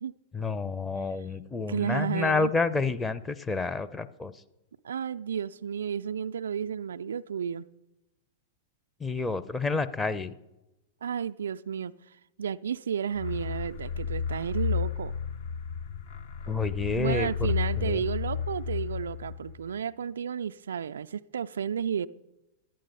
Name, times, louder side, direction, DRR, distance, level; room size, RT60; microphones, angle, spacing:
voice 1, 0.3-4.4 9.0-10.3 16.5-18.0, left 4 dB, 15° left, 0.6 m, -29 dB
voice 2, 1.7-2.5 4.8-7.7 11.0-11.9 12.4-15.1 17.0-22.1, right 7 dB, 75° right, 0.3 m, -32 dB
sound 1, 13.1-19.7, left 6 dB, 60° left, 0.8 m, -32 dB
11.5 x 9.0 x 5.4 m
hypercardioid pair, 100°, 0 cm